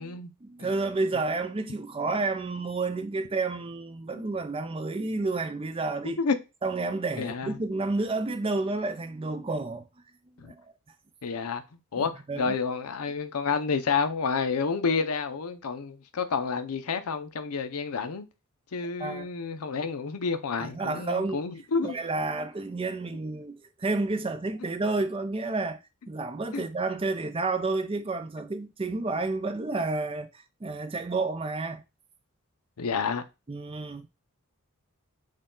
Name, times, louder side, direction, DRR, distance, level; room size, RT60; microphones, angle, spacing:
voice 1, 0.0-6.2 6.6-9.8 10.4-10.6 12.0-12.6 19.0-19.3 20.6-21.4 21.8-25.8 26.1-30.3 30.6-31.8 33.5-34.1, right 3 dB, 25° right, 0.4 m, -30 dB
voice 2, 7.2-7.6 10.4-10.5 11.2-11.6 11.9-12.1 12.4-18.3 18.7-22.0 26.5-26.6 32.8-33.2, left 5 dB, 80° left, 0.6 m, -29 dB
6.3 x 2.3 x 3.7 m
head